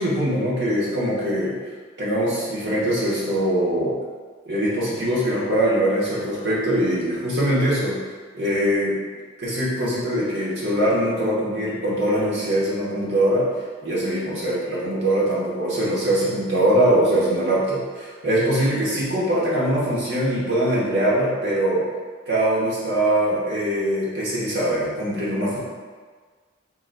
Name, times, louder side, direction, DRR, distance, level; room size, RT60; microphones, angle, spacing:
voice 1, 0.0-1.5 2.0-3.9 4.5-8.0 8.3-8.9 9.4-13.5 13.8-21.8 22.3-25.6, right 1 dB, 60° right, -8 dB, 1.1 m, -22 dB
3.9 x 3.8 x 2.2 m, 1.5 s
head